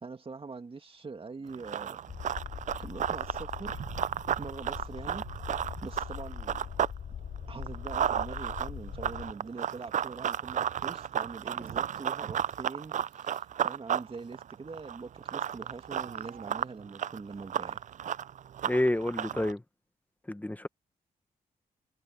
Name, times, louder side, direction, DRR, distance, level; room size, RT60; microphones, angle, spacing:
voice 1, 0.0-2.4 2.7-3.8 4.4-5.2 5.8-6.7 7.5-17.8, right 4 dB, 40° right, 2.2 m, -43 dB
Run, 1.5-7.0 7.3-19.5, right 9 dB, 55° right, 0.4 m, -33 dB
sound 1, 2.1-9.3, left 8 dB, 85° left, 5.1 m, -42 dB
voice 2, 18.7-19.6 20.3-20.7, left 1 dB, 10° left, 1.2 m, -29 dB
cardioid pair, 85°, 15 cm